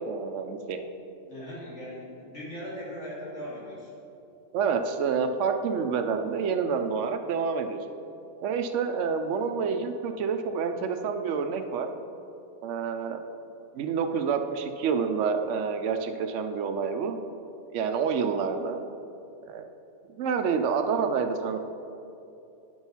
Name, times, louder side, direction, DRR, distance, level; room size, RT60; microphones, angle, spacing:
voice 1, 0.0-0.8 4.5-7.8 8.4-11.9 12.6-13.2 13.7-17.2 17.7-18.8 19.5-19.6 20.1-21.6, right 6 dB, 85° right, 6 dB, 1.0 m, -28 dB
voice 2, 1.3-3.9, equal, 75° left, -7 dB, 3.1 m, -39 dB
10.5 x 6.2 x 5.6 m, 2.8 s
omnidirectional pair, 1.2 m